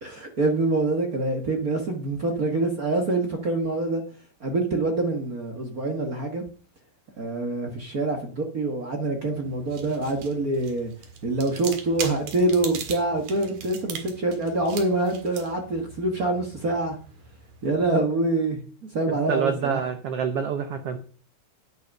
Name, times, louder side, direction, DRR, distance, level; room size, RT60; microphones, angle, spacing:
voice 1, 0.0-4.0 4.4-6.4 7.2-10.9 11.2-17.0 17.6-18.6 18.9-19.8, right 2 dB, 50° right, 3 dB, 1.1 m, -25 dB
sound 1, 9.4-17.9, right 7 dB, 65° right, 3.0 m, -40 dB
voice 2, 19.1-21.0, right 7 dB, 80° right, 8 dB, 1.3 m, -27 dB
9.9 x 9.2 x 5.3 m, 0.41 s
omnidirectional pair, 4.0 m